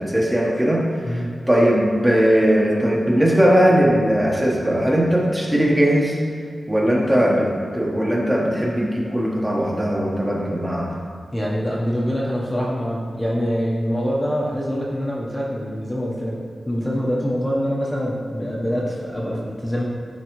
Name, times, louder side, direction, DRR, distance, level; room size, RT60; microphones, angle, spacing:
voice 1, 0.0-6.2 6.7-10.9, equal, 15° right, -4 dB, 1.2 m, -19 dB
voice 2, 11.3-16.4 16.7-19.8, equal, 15° left, -5 dB, 1.0 m, -24 dB
11.0 x 3.9 x 3.1 m, 2.3 s
wide cardioid pair, 90°, 0 cm